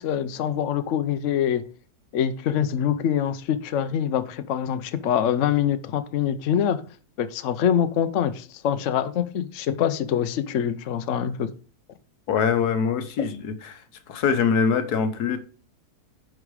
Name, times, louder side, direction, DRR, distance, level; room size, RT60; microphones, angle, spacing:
voice 1, 0.0-1.6 2.1-6.8 7.2-11.5, left 9 dB, 60° left, 0.9 m, -24 dB
voice 2, 12.3-13.8 14.1-15.4, left 6 dB, 80° left, 1.5 m, -23 dB
10.5 x 5.0 x 4.7 m
omnidirectional pair, 1.6 m